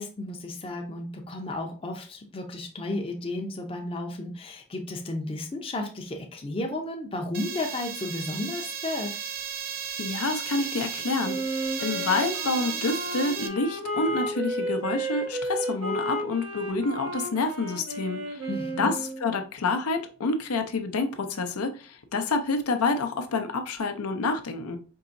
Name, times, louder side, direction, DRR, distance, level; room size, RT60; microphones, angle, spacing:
voice 1, 0.0-9.2 18.5-18.9, left 2 dB, 25° left, 0.5 m, -33 dB
sound 1, 7.3-13.5, right 8 dB, 45° right, 0.4 m, -34 dB
voice 2, 10.0-11.4 11.8-18.5 18.8-24.8, left 3 dB, 90° left, 0.6 m, -28 dB
Wind instrument woodwind instrument, 11.2-19.3, right 1 dB, 80° right, 1.5 m, -32 dB
4.6 x 2.9 x 2.5 m
head